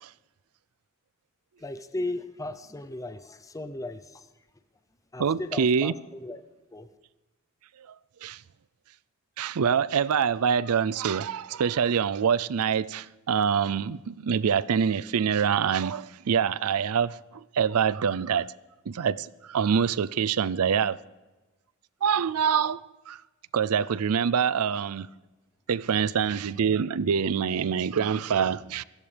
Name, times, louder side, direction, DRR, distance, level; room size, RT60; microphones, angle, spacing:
voice 1, 1.6-4.3 5.1-6.4 6.7-6.9, left 2 dB, 15° left, 0.6 m, -36 dB
voice 2, 5.2-5.9 8.2-8.4 9.4-18.5 18.9-21.0 22.0-23.2 23.5-25.1 25.7-28.8, right 7 dB, 75° right, 0.5 m, -25 dB
26.5 x 16.0 x 3.4 m
head